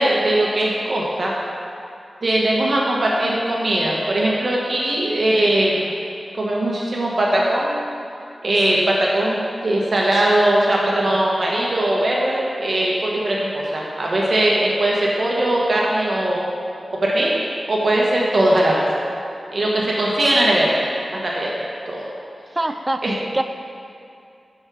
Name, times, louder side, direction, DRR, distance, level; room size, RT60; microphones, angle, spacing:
voice 1, 0.0-1.3 2.2-5.9 6.3-7.7 8.4-16.4 17.0-17.3 17.7-18.8 19.5-20.8 21.2-22.1 23.0-23.2, right 1 dB, 50° right, -4 dB, 1.1 m, -20 dB
voice 2, 22.6-23.4, right 1 dB, 25° right, 8 dB, 0.4 m, -24 dB
6.4 x 6.0 x 6.1 m, 2.6 s
wide cardioid pair, 85°, 0 cm